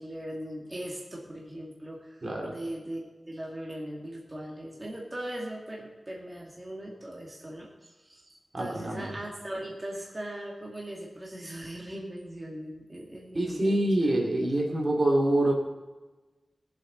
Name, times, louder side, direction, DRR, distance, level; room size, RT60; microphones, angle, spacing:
voice 1, 0.0-13.9, right 1 dB, 25° right, -3 dB, 2.4 m, -39 dB
voice 2, 2.2-2.5 8.5-9.1 13.3-15.5, right 1 dB, 45° right, -1 dB, 2.8 m, -26 dB
20.5 x 7.9 x 4.0 m, 1.2 s
wide cardioid pair, 100°, 0 cm